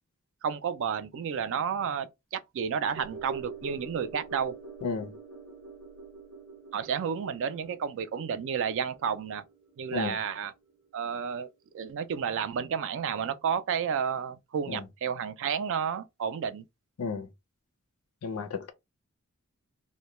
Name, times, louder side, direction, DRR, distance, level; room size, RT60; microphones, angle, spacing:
voice 1, 0.4-4.5 6.7-9.4 9.8-10.5 10.9-11.5 11.7-16.6, right 7 dB, 60° right, 0.3 m, -31 dB
sound 1, 3.0-11.4 11.7-11.8, right 4 dB, 90° right, 0.8 m, -45 dB
voice 2, 4.8-5.2 9.9-10.2 14.7-14.8 17.0-17.3 18.2-18.7, left 4 dB, 85° left, 0.5 m, -33 dB
2.2 x 2.1 x 2.9 m
head